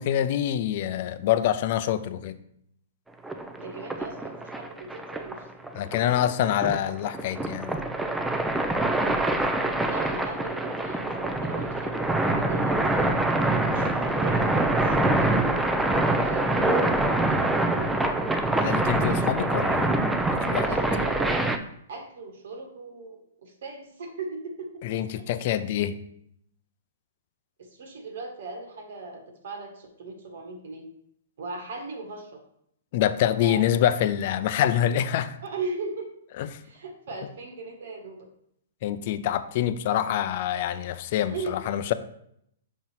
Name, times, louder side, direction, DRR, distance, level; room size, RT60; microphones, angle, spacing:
voice 1, 0.0-2.4 5.7-7.8 18.6-20.0 20.3-20.7 24.8-26.0 32.9-35.4 36.4-36.5 38.8-41.9, left 11 dB, 50° left, 12 dB, 0.5 m, -26 dB
sound 1, 3.2-21.6, right 2 dB, 5° right, 0.5 m, -25 dB
voice 2, 3.6-5.5 9.8-13.2 13.7-15.5 16.2-18.1 20.6-21.4 21.9-25.0 27.6-30.9 31.4-32.4 33.4-33.6 35.4-36.1 36.6-38.2 41.3-41.6, right 3 dB, 65° right, 4 dB, 1.6 m, -38 dB
6.2 x 4.0 x 4.5 m, 0.72 s
hypercardioid pair, 125°, 0 cm